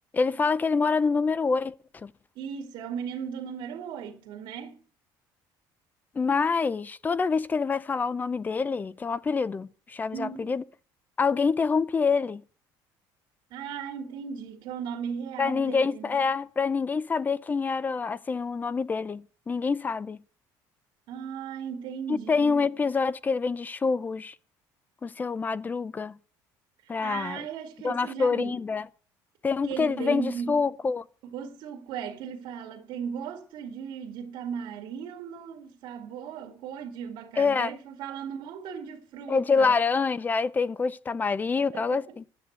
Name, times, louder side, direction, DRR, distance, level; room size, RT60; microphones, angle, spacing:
voice 1, 0.1-1.7 2.0-2.1 6.2-10.6 11.2-12.4 15.4-20.2 22.1-24.3 25.0-26.2 26.9-27.4 27.8-28.8 29.4-31.0 37.4-37.7 39.3-42.2, left 5 dB, 20° left, 0.6 m, -26 dB
voice 2, 2.4-4.8 10.1-10.5 13.5-16.2 21.1-22.6 26.8-28.6 29.6-30.6 31.2-39.8 41.6-42.1, right 7 dB, 70° right, 2.3 m, -37 dB
12.0 x 8.0 x 8.0 m
cardioid pair, 130°, 8 cm